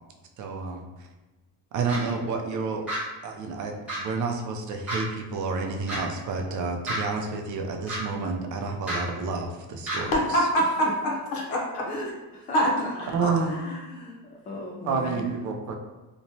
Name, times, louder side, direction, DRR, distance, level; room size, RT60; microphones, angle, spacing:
voice 1, 0.4-0.9 1.7-2.8 3.2-10.5 13.1-13.5 14.8-15.7, right 4 dB, 55° right, 3 dB, 0.5 m, -30 dB
sound 1, 1.9-2.0 2.9-3.0 3.9-4.0 4.9-5.0 5.9-6.0 6.9-7.0 7.9-8.0 8.9-9.0 9.9-10.0, right 1 dB, 5° right, 1.1 m, -30 dB
voice 2, 10.1-11.9 12.5-12.7 13.0-13.6, right 1 dB, 85° left, -2 dB, 0.8 m, -25 dB
voice 3, 11.9-12.9 13.3-14.2 14.5-15.2, left 1 dB, 25° left, -3 dB, 0.3 m, -37 dB
2.9 x 2.2 x 2.7 m, 1.1 s
cardioid pair, 135°, 35 cm